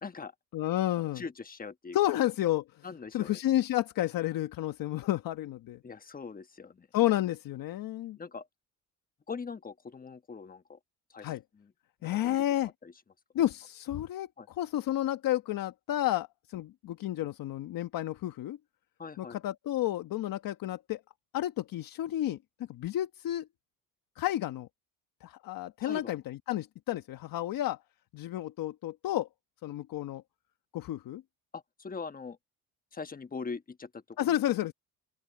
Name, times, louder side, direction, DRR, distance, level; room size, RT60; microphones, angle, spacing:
voice 1, 0.0-0.3 1.1-2.1 2.8-3.4 5.8-6.9 8.2-8.5 9.3-10.8 11.1-11.7 12.0-12.4 12.8-12.9 14.4-14.5 19.0-19.4 25.8-26.1 31.5-32.4 32.9-34.3, left 5 dB, 25° left, 1.2 m, -42 dB
voice 2, 0.5-1.2 1.9-2.8 3.1-5.8 6.9-8.2 11.2-11.4 12.0-12.7 13.3-18.6 19.2-21.0 21.3-22.4 22.7-23.5 24.2-24.7 25.2-27.8 28.1-29.3 29.6-30.2 30.7-31.2 34.2-34.7, left 13 dB, 65° left, 1.2 m, -31 dB
open air
cardioid pair, 105°, 36 cm